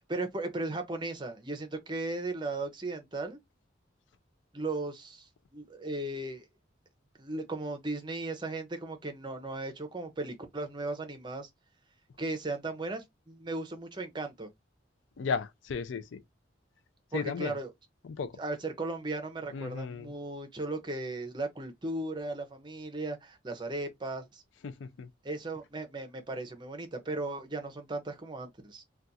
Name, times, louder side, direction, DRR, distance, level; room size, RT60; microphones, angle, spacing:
voice 1, 0.0-3.4 4.5-6.5 7.2-11.5 12.2-14.5 17.1-17.7 18.4-24.4 25.2-28.8, right 2 dB, 25° right, 0.6 m, -36 dB
voice 2, 15.2-16.2 17.1-17.6 18.0-18.3 19.5-20.1 24.6-25.1, left 5 dB, 75° left, 0.4 m, -35 dB
2.4 x 2.3 x 3.9 m
head